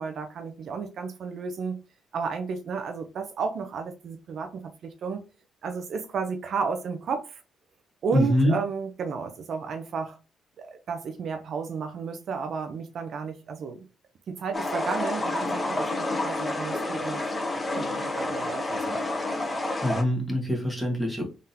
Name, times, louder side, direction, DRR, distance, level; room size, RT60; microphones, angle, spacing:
voice 1, 0.0-1.8 2.1-5.2 5.6-7.4 8.0-10.2 10.7-13.9 14.3-17.2 17.7-19.0, right 5 dB, 60° right, 6 dB, 0.6 m, -32 dB
voice 2, 8.1-8.5 19.8-21.2, equal, 5° left, 0 dB, 1.6 m, -24 dB
sound 1, 14.5-20.0, left 2 dB, 20° left, 1.0 m, -29 dB
3.7 x 3.6 x 2.8 m, 0.31 s
cardioid pair, 90°, 0 cm